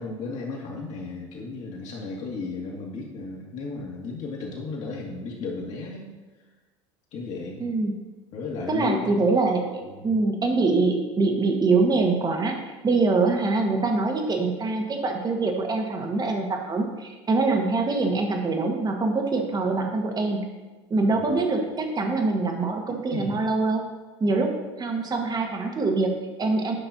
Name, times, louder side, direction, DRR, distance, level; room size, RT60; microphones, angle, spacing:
voice 1, 0.0-6.1 7.1-7.6 8.3-9.3 9.8-10.2 21.1-21.4 22.9-23.3, left 3 dB, 50° left, -2 dB, 2.3 m, -34 dB
voice 2, 7.6-7.9 8.7-12.6 12.8-20.4 20.9-23.8 24.2-26.8, right 3 dB, 25° right, 3 dB, 1.4 m, -24 dB
11.0 x 5.7 x 2.8 m, 1.2 s
hypercardioid pair, 75°, 15 cm